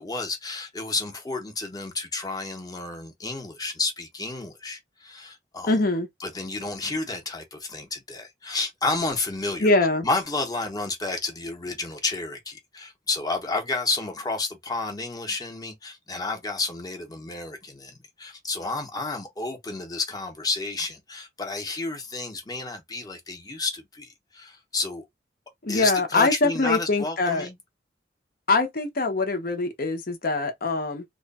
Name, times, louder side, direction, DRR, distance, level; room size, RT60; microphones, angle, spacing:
voice 1, 0.0-5.7 6.2-9.7 10.0-25.0 25.7-27.6, left 3 dB, 20° left, 0.9 m, -31 dB
voice 2, 5.7-6.1 9.6-10.1 25.6-27.5 28.5-31.0, left 3 dB, 55° left, 0.9 m, -23 dB
3.1 x 2.3 x 4.0 m
head